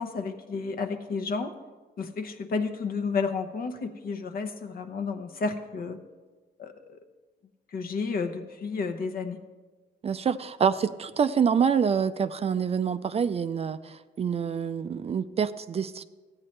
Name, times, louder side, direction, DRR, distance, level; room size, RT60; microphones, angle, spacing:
voice 1, 0.0-1.5 2.0-6.0 6.6-7.0 7.7-9.4, left 4 dB, 60° left, 8 dB, 0.9 m, -31 dB
voice 2, 10.0-16.0, right 7 dB, 35° right, 12 dB, 0.4 m, -26 dB
14.5 x 8.8 x 3.2 m, 1.3 s
cardioid pair, 95°, 17 cm